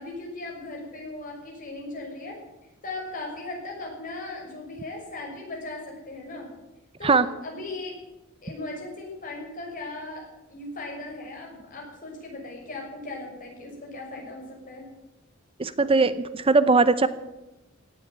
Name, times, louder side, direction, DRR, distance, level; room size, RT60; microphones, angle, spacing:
voice 1, 0.0-2.4 2.8-6.5 7.0-8.0 8.4-14.8, left 2 dB, 40° left, -1 dB, 6.3 m, -38 dB
voice 2, 15.6-17.1, right 3 dB, 25° right, 14 dB, 0.7 m, -20 dB
17.5 x 8.8 x 9.3 m, 0.98 s
head